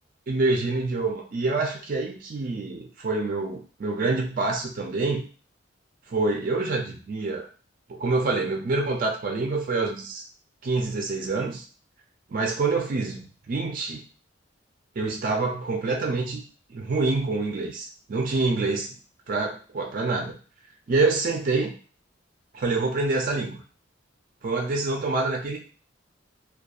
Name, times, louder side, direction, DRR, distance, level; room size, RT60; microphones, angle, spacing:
voice 1, 0.3-5.2 6.1-7.5 7.9-10.2 10.6-11.6 12.3-14.0 15.0-16.4 16.7-18.9 19.3-20.4 20.9-21.7 22.5-23.6 24.4-25.6, right 3 dB, 45° right, 1 dB, 0.4 m, -26 dB
2.6 x 2.2 x 2.3 m, 0.39 s
head